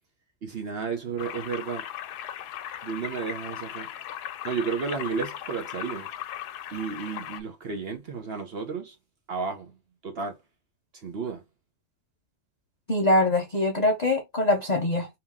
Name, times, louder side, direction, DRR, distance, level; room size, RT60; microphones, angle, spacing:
voice 1, 0.4-1.8 2.8-3.9 4.4-6.1 6.7-9.0 9.3-9.8 10.0-10.4 10.9-11.4, right 5 dB, 50° right, 0.8 m, -32 dB
sound 1, 1.2-7.4, left 11 dB, 85° left, 1.1 m, -38 dB
voice 2, 12.9-15.1, left 1 dB, 65° left, 0.4 m, -23 dB
2.9 x 2.8 x 3.5 m
omnidirectional pair, 1.6 m